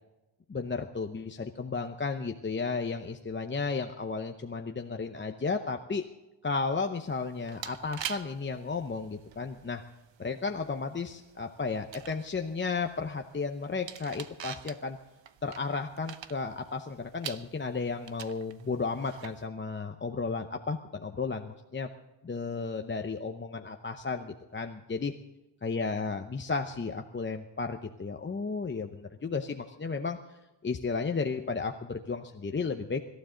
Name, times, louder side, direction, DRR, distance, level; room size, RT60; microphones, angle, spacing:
voice 1, 0.5-6.0 6.4-9.8 10.2-15.0 15.4-21.9 22.2-25.1 25.6-33.0, left 4 dB, 25° left, 4 dB, 0.7 m, -33 dB
sound 1, 7.0-19.5, right 9 dB, 70° right, 1.0 m, -46 dB
25.0 x 12.5 x 3.8 m, 1.0 s
wide cardioid pair, 115°, 47 cm